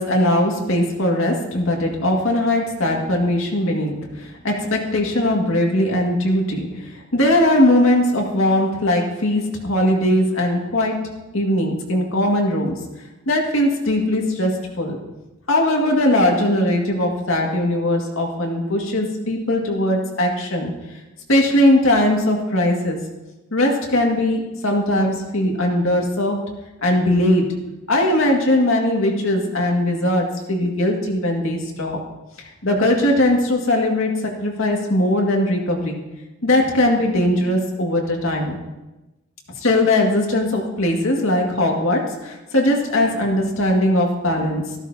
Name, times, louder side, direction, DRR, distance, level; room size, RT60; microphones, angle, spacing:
voice 1, 0.0-11.1 11.3-12.8 13.3-15.0 15.5-20.7 21.3-23.0 23.5-26.4 26.8-27.6 27.9-32.0 32.4-36.0 36.4-38.6 39.6-44.7, left 1 dB, 80° left, 0 dB, 2.1 m, -20 dB
14.0 x 12.5 x 2.8 m, 1.0 s
head